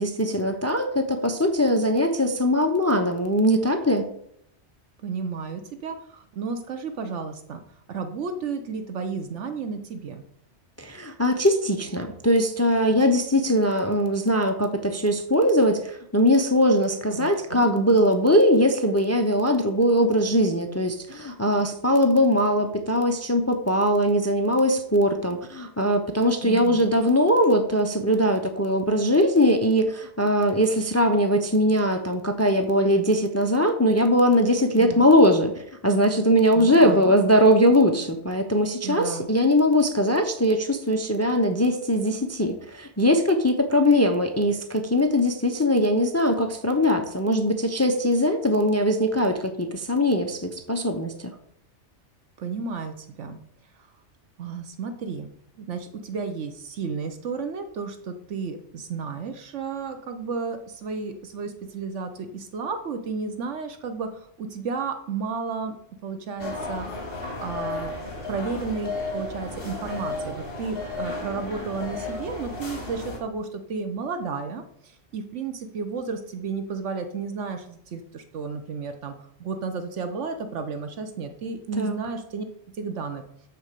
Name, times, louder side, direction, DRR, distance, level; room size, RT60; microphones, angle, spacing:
voice 1, 0.0-4.0 10.8-51.1 81.8-82.0, equal, 15° left, 5 dB, 0.8 m, -21 dB
voice 2, 5.0-7.6 7.9-10.2 17.2-17.7 26.4-26.8 34.8-35.2 36.5-37.2 38.8-39.3 52.4-53.4 54.4-55.3 55.6-65.8 66.0-67.9 68.3-79.1 79.4-83.2, right 5 dB, 85° right, 7 dB, 1.2 m, -32 dB
sound 1, 66.4-73.2, left 3 dB, 50° left, 3.4 m, -33 dB
13.0 x 4.3 x 6.7 m, 0.71 s
omnidirectional pair, 1.2 m